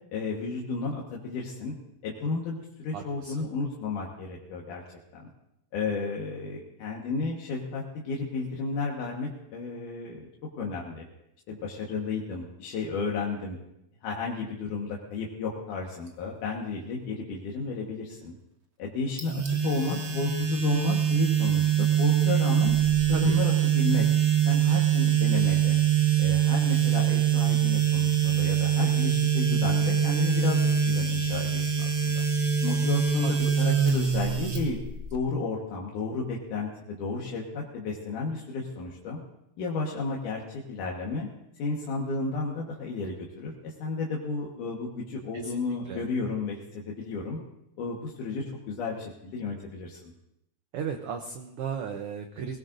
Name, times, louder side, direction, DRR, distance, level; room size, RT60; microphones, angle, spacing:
voice 1, 0.1-1.7 2.0-5.3 5.7-10.3 10.6-11.0 11.5-13.6 14.0-18.3 18.8-22.7 23.1-24.1 24.4-25.8 26.2-32.2 32.6-34.8 35.1-39.2 39.6-41.3 41.6-47.4 47.8-50.1, left 4 dB, 85° left, -2 dB, 3.0 m, -32 dB
voice 2, 2.9-3.4 23.1-23.4 33.2-33.3 45.4-45.6 45.9-46.0 50.7-52.6, right 7 dB, 70° right, 5 dB, 1.4 m, -35 dB
sound 1, 19.2-35.1, right 8 dB, 55° right, 0.7 m, -24 dB
22.5 x 17.0 x 2.6 m, 0.82 s
omnidirectional pair, 3.5 m